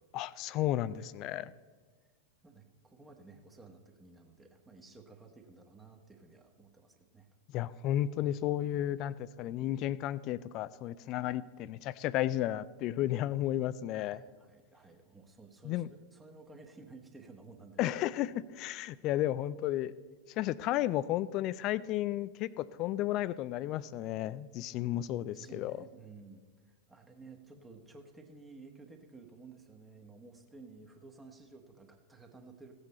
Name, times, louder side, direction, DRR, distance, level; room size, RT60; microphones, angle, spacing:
voice 1, 0.1-1.5 7.5-14.2 15.6-15.9 17.8-19.9 20.4-25.8, left 13 dB, 40° left, 19 dB, 0.3 m, -33 dB
voice 2, 1.3-1.7 2.4-7.3 13.9-17.9 25.2-32.7, right 3 dB, 15° right, 4 dB, 1.2 m, -54 dB
16.0 x 8.1 x 4.2 m, 1.4 s
figure-of-eight pair, 90°, 0 cm